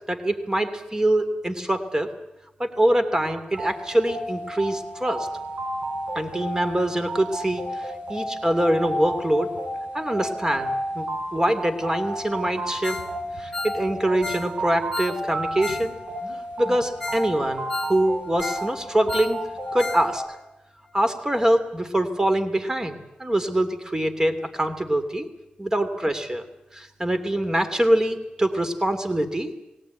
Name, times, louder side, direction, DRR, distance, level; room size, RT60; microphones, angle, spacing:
voice 1, 0.1-2.1 2.6-5.3 6.1-9.5 9.9-13.0 13.4-15.9 16.6-19.4 19.7-20.2 20.9-25.3 25.6-26.4 26.7-29.5, right 1 dB, 20° right, 8 dB, 2.8 m, -24 dB
sound 1, 3.5-20.2, right 1 dB, 65° right, 7.0 m, -32 dB
Ringtone, 12.8-13.1 13.4-15.9 16.2-16.3 16.7-16.8 17.0-17.3 17.6-18.7 18.9-20.1 20.3-20.4 20.9-21.0, left 3 dB, 5° left, 3.8 m, -33 dB
21.0 x 18.0 x 9.1 m, 0.91 s
cardioid pair, 70°, 3 cm